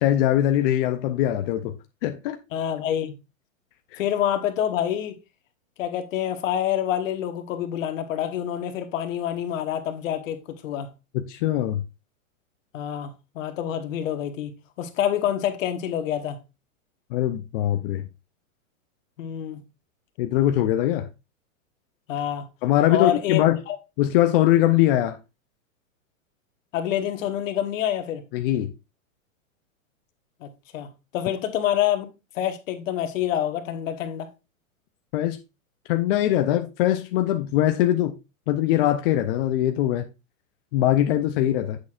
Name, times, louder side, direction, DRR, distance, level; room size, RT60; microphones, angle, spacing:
voice 1, 0.0-1.7 2.0-2.4 3.9-4.0 11.1-11.8 17.1-18.0 20.2-21.1 22.6-23.6 24.0-25.2 28.3-28.7 35.1-35.4 35.9-38.1 38.5-40.1 40.7-41.8, left 13 dB, 40° left, 0.5 m, -22 dB
voice 2, 2.5-3.1 4.0-5.2 5.8-10.9 12.7-14.5 14.8-16.4 19.2-19.6 22.1-22.5 22.9-23.4 23.7-23.8 26.7-28.2 30.4-30.5 30.7-32.1 32.3-34.3, left 10 dB, 65° left, 1.4 m, -27 dB
8.2 x 6.3 x 2.4 m
hypercardioid pair, 140°, 42 cm